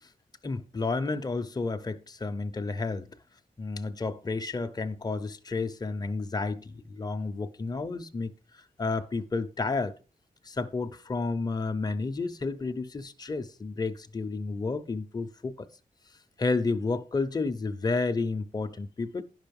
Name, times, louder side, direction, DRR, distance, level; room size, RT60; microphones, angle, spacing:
voice 1, 0.4-3.1 3.6-8.3 8.8-9.9 10.4-15.7 16.4-19.2, left 3 dB, 25° left, 0.8 m, -31 dB
11.5 x 5.7 x 5.4 m
wide cardioid pair, 165°, 15 cm